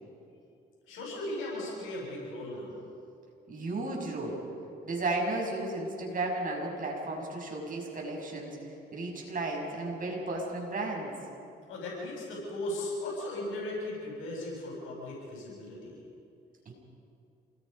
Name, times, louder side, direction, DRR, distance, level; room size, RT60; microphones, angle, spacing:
voice 1, 0.9-2.8 11.7-16.0, left 1 dB, 85° left, -3 dB, 7.2 m, -37 dB
voice 2, 3.5-4.4 4.8-11.1 16.7-16.8, right 2 dB, 45° right, -1 dB, 6.3 m, -34 dB
27.5 x 19.5 x 5.4 m, 2.5 s
cardioid pair, 90°, 20 cm